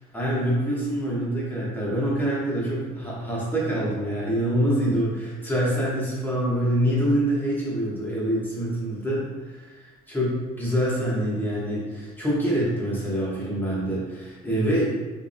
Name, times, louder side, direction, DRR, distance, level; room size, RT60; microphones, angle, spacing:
voice 1, 0.1-14.8, equal, 10° left, -6 dB, 1.2 m, -25 dB
4.8 x 3.1 x 2.2 m, 1.2 s
cardioid pair, 110°, 17 cm